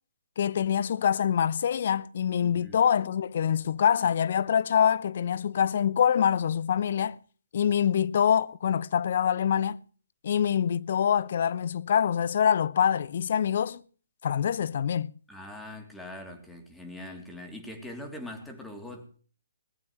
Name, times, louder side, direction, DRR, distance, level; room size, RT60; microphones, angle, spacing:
voice 1, 0.4-7.2 7.5-9.8 10.2-13.8 14.2-15.1, left 8 dB, 50° left, 0.8 m, -25 dB
voice 2, 2.4-2.8 15.3-19.2, left 1 dB, 5° left, 3.2 m, -42 dB
20.5 x 19.0 x 3.2 m
figure-of-eight pair, 135°, 0 cm